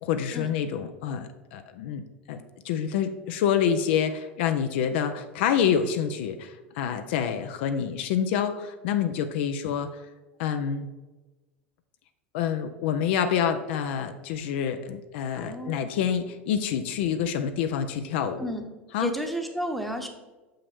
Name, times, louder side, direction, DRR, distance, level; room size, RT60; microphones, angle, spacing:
voice 1, 0.0-2.4 2.6-10.0 10.4-10.9 12.3-18.5 18.9-19.1, left 8 dB, 65° left, 8 dB, 0.5 m, -27 dB
voice 2, 15.3-15.9 18.4-18.6 19.0-20.1, equal, ahead, 4 dB, 0.9 m, -32 dB
6.8 x 5.4 x 3.5 m, 1.2 s
hypercardioid pair, 80°, 7 cm